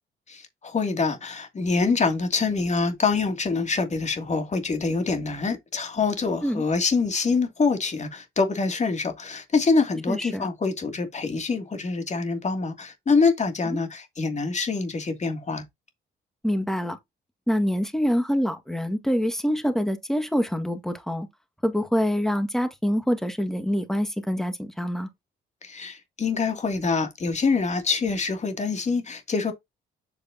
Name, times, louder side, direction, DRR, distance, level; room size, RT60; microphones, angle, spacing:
voice 1, 0.3-15.6 25.6-29.5, left 4 dB, 35° left, 2.7 m, -25 dB
voice 2, 10.1-10.5 13.7-13.8 16.4-17.0 17.5-21.3 21.6-25.1, equal, ahead, 1.8 m, -25 dB
8.1 x 6.7 x 2.8 m
cardioid pair, 90°, 20 cm